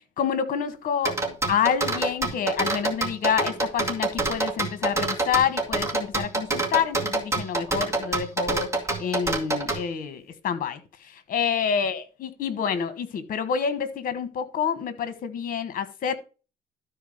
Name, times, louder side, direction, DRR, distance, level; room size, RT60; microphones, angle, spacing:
voice 1, 0.0-16.1, left 7 dB, 55° left, 1.4 m, -28 dB
sound 1, 1.1-9.8, right 2 dB, 15° right, 2.3 m, -26 dB
12.5 x 4.6 x 5.1 m
cardioid pair, 110°, 17 cm